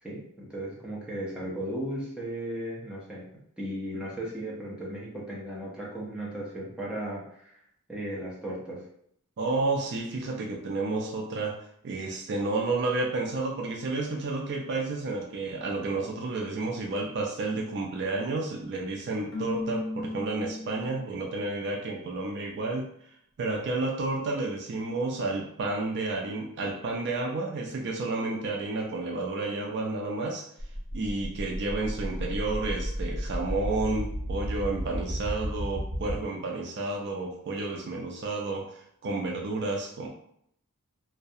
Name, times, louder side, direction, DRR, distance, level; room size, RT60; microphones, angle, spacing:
voice 1, 0.0-3.2 3.6-7.5 7.9-8.8, right 1 dB, 5° right, -6 dB, 0.6 m, -36 dB
voice 2, 9.4-22.9 23.4-30.5 30.9-40.1, right 3 dB, 50° right, 0 dB, 0.4 m, -31 dB
Keyboard (musical), 19.3-21.3, left 2 dB, 55° left, 0.9 m, -35 dB
sound 1, 30.6-36.2, equal, 70° right, 0.8 m, -33 dB
2.3 x 2.1 x 2.7 m, 0.71 s
head